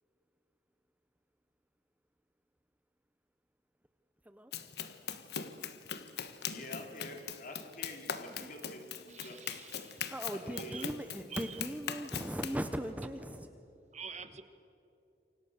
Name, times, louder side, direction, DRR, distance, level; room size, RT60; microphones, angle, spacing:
Run, 4.5-12.6, left 7 dB, 65° left, 1.4 m, -41 dB
voice 1, 6.5-9.4 10.4-10.8, left 1 dB, 50° left, 3 dB, 3.9 m, -47 dB
voice 2, 9.1-10.1 10.5-10.9 11.3-11.6 13.9-14.4, right 6 dB, 40° right, 10 dB, 1.5 m, -47 dB
voice 3, 10.1-13.5, equal, 10° right, 8 dB, 0.9 m, -39 dB
29.0 x 25.0 x 6.7 m, 2.8 s
head